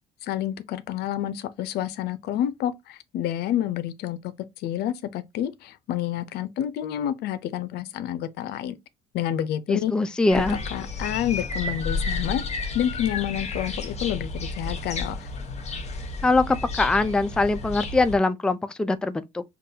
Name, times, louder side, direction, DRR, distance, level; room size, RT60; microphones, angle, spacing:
voice 1, 0.2-4.2 4.6-8.8 9.1-9.9 10.7-15.3, left 11 dB, 75° left, 0.5 m, -29 dB
voice 2, 9.7-10.6 16.2-19.4, left 3 dB, 5° left, 0.3 m, -22 dB
sound 1, 10.3-18.2, left 3 dB, 40° left, 1.0 m, -32 dB
5.2 x 2.3 x 2.7 m
cardioid pair, 110°, 17 cm